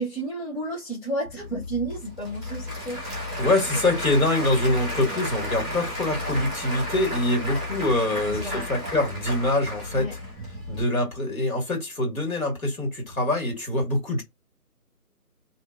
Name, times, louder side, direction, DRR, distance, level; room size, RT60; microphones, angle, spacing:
voice 1, 0.0-3.0 3.9-4.0 8.2-8.7 9.9-10.1, right 2 dB, 40° left, 1.0 m, -32 dB
Applause / Crowd, 1.2-10.8, left 1 dB, ahead, 0.5 m, -33 dB
voice 2, 3.4-10.1 10.7-14.2, left 2 dB, 65° left, 1.6 m, -24 dB
2.6 x 2.0 x 2.4 m
figure-of-eight pair, 165°, 45 cm